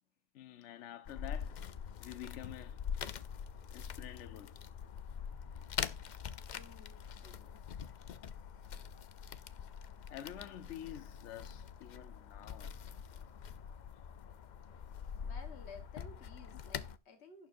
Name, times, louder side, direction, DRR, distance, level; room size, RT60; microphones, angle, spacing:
voice 1, 0.3-1.6 2.0-2.8 3.7-4.6 10.1-12.8, left 11 dB, 85° left, 1.0 m, -48 dB
sound 1, 1.0-17.0, left 7 dB, 50° left, 0.6 m, -44 dB
voice 2, 6.4-7.6 15.2-17.5, left 4 dB, 70° left, 1.6 m, -55 dB
11.5 x 9.3 x 2.6 m
omnidirectional pair, 1.2 m